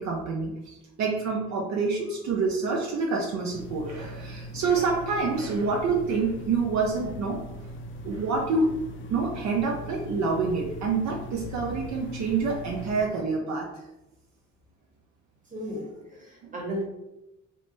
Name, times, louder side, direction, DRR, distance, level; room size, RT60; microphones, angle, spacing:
voice 1, 0.0-7.7 8.0-8.7 9.1-13.7 16.4-16.6, right 4 dB, 70° right, -1 dB, 0.6 m, -27 dB
sound 1, 3.5-13.0, equal, 40° left, 0.4 m, -40 dB
voice 2, 15.5-16.8, equal, 25° right, -3 dB, 1.2 m, -35 dB
3.2 x 2.0 x 3.1 m, 0.93 s
cardioid pair, 90°, 30 cm